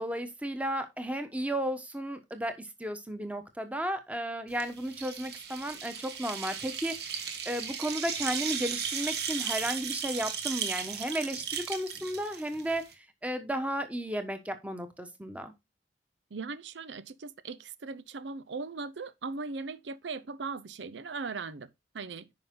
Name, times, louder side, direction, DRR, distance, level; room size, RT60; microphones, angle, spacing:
voice 1, 0.0-15.5, right 1 dB, 10° right, 1.2 m, -34 dB
sound 1, 4.5-12.9, right 7 dB, 60° right, 1.6 m, -36 dB
voice 2, 16.3-22.3, right 4 dB, 75° right, 0.6 m, -39 dB
9.9 x 5.6 x 3.7 m
head